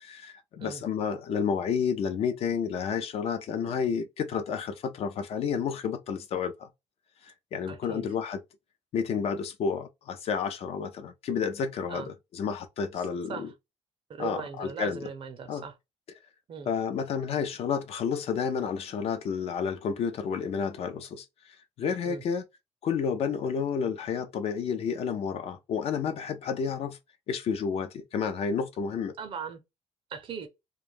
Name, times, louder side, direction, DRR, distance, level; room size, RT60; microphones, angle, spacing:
voice 1, 0.0-6.7 7.2-8.4 8.9-13.5 14.2-15.1 15.5-15.6 16.7-22.4 22.8-27.0 27.3-29.1, left 6 dB, 55° left, 0.5 m, -30 dB
voice 2, 7.7-8.1 11.9-12.1 13.3-13.5 14.1-15.7 16.5-16.7 22.0-22.2 29.2-29.6 30.1-30.5, right 6 dB, 45° right, 0.5 m, -38 dB
2.3 x 2.1 x 3.0 m
cardioid pair, 125°, 12 cm